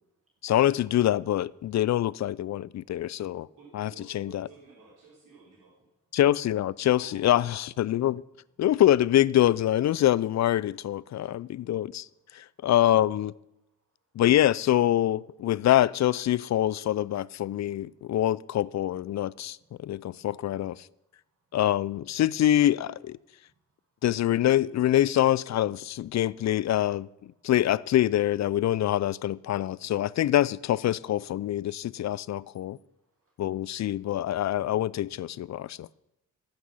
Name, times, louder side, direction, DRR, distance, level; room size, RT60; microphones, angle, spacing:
voice 1, 0.4-3.5 3.7-4.5 6.1-8.2 8.6-12.1 12.3-13.3 14.2-20.9 21.5-23.2 24.0-32.8 33.4-35.9, left 12 dB, 50° left, 0.5 m, -25 dB
voice 2, 3.5-5.9 6.9-7.2 7.5-7.6, right 3 dB, 65° right, 3.8 m, -53 dB
voice 3, 23.3-23.6 24.0-24.1 33.0-33.3 34.5-34.7 35.7-36.0, right 4 dB, 40° right, 2.0 m, -66 dB
11.5 x 8.9 x 5.5 m
supercardioid pair, 50°, 34 cm